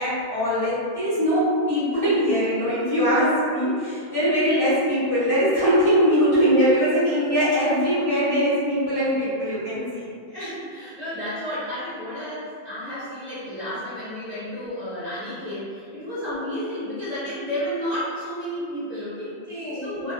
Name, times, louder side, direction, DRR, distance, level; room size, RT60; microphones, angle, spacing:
voice 1, 0.0-10.1 19.5-20.1, equal, 20° left, -14 dB, 0.8 m, -22 dB
voice 2, 10.3-19.4 19.7-20.1, equal, 40° right, -12 dB, 0.8 m, -32 dB
2.3 x 2.2 x 2.4 m, 2.2 s
omnidirectional pair, 1.2 m